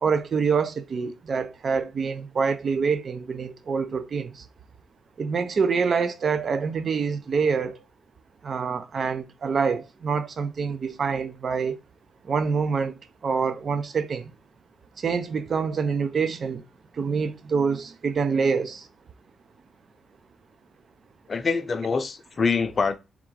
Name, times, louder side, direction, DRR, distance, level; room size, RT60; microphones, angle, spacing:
voice 1, 0.0-4.4 5.2-7.8 8.4-11.8 12.3-12.9 13.2-14.3 15.0-16.6 17.0-18.9, right 5 dB, 50° right, 0.5 m, -26 dB
voice 2, 21.3-23.0, left 5 dB, 40° left, 0.5 m, -25 dB
3.6 x 2.4 x 4.5 m
cardioid pair, 85°, 0 cm